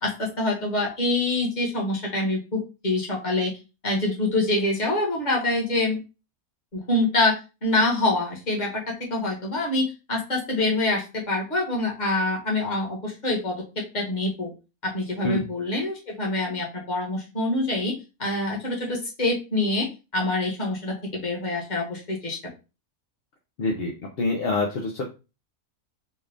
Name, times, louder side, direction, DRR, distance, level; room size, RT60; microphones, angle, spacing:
voice 1, 0.0-3.5 3.8-6.0 6.7-7.3 7.6-8.8 9.1-14.5 14.8-17.9 18.2-19.9 20.1-22.4, left 2 dB, 30° left, -1 dB, 1.3 m, -25 dB
voice 2, 23.6-25.0, left 2 dB, 55° left, 0 dB, 0.7 m, -26 dB
4.3 x 2.4 x 3.4 m, 0.30 s
omnidirectional pair, 1.6 m